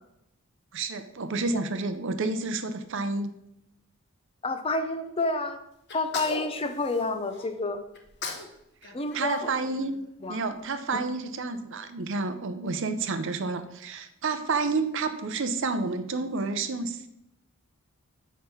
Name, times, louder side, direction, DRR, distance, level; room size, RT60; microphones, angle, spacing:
voice 1, 0.7-3.3 8.8-10.0 10.3-17.1, right 3 dB, 60° right, 10 dB, 0.6 m, -30 dB
voice 2, 4.4-5.6 5.9-7.8 8.9-9.5 10.2-10.4, left 2 dB, 25° left, 8 dB, 0.6 m, -29 dB
Sneeze, 5.9-7.5 7.9-8.5 8.8-10.3, left 3 dB, 55° left, 1.1 m, -38 dB
6.2 x 5.1 x 5.6 m, 0.81 s
head